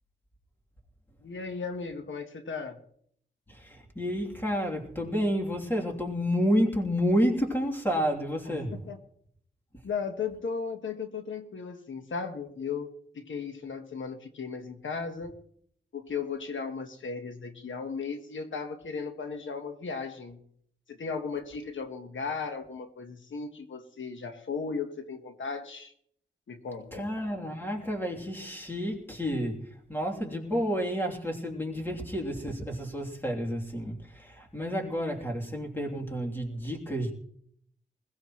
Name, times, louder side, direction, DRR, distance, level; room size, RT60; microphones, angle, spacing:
voice 1, 1.2-2.8 8.5-9.0 9.8-15.3 15.9-20.4 20.9-25.9 26.5-27.1, left 5 dB, 85° left, 6 dB, 1.4 m, -36 dB
voice 2, 3.5-8.7 26.9-37.1, equal, 10° left, -1 dB, 3.2 m, -30 dB
21.0 x 16.5 x 3.2 m, 0.67 s
wide cardioid pair, 110°, 19 cm